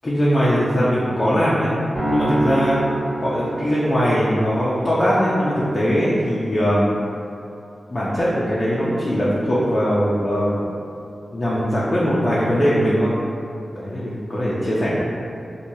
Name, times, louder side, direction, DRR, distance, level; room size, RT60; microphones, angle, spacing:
voice 1, 0.0-1.7 2.1-2.8 3.2-6.9 7.9-10.7 11.3-13.1 13.7-14.9, equal, 25° left, -8 dB, 0.5 m, -20 dB
sound 1, 1.9-4.3, right 1 dB, 15° right, 1.1 m, -25 dB
4.4 x 2.2 x 2.7 m, 2.6 s
wide cardioid pair, 130°, 0 cm